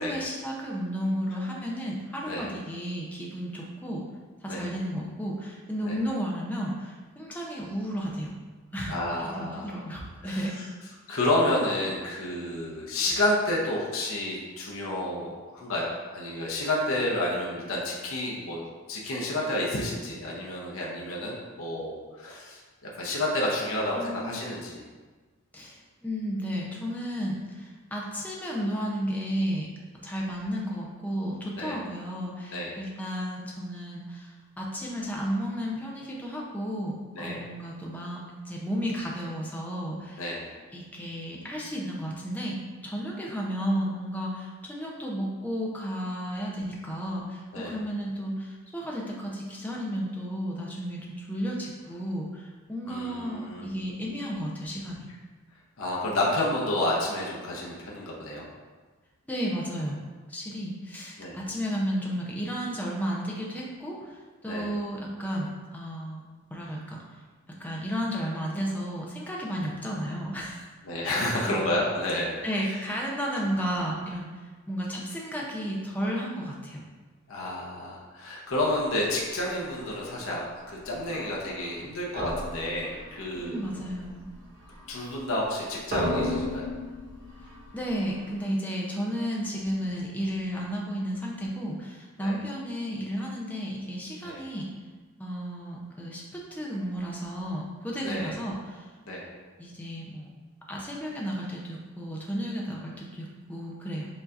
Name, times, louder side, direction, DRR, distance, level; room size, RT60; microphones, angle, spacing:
voice 1, 0.0-4.0 4.4-8.3 8.7-10.5 23.9-24.4 25.5-29.7 30.0-40.2 40.7-42.6 42.8-55.1 59.3-60.0 60.3-66.2 66.5-67.0 67.6-70.7 71.5-71.6 72.4-74.3 74.7-76.8 83.4-84.3 87.7-94.7 95.2-98.9 99.6-100.3 100.7-104.1, equal, 5° left, -3 dB, 0.6 m, -33 dB
voice 2, 8.9-9.8 10.2-10.5 11.1-18.6 18.9-24.8 31.5-31.8 32.5-32.8 37.1-37.4 40.2-40.4 47.5-47.7 52.8-53.7 55.8-58.5 61.2-61.4 64.4-64.7 70.8-72.3 77.3-83.6 84.9-86.7 92.2-92.3 94.2-94.4 98.0-98.3 99.1-99.2, left 1 dB, 70° left, -4 dB, 0.8 m, -30 dB
sound 1, 79.6-80.0 80.7-81.8 82.1-85.5 85.8-88.4, left 1 dB, 45° right, 1.0 m, -35 dB
7.0 x 2.8 x 2.5 m, 1.4 s
head